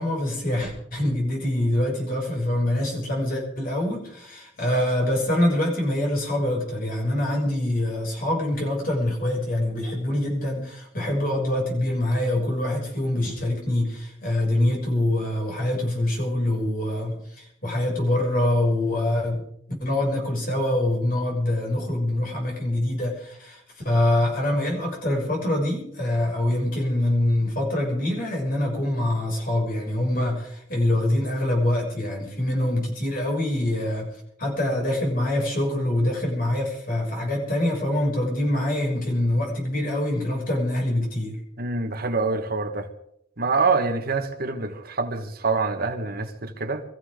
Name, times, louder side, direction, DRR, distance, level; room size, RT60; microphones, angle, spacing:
voice 1, 0.0-19.5 19.8-41.4, left 1 dB, 50° left, 6.5 m, -25 dB
voice 2, 41.6-42.9 43.4-46.8, right 4 dB, 55° right, 1.5 m, -25 dB
24.0 x 15.0 x 3.8 m
head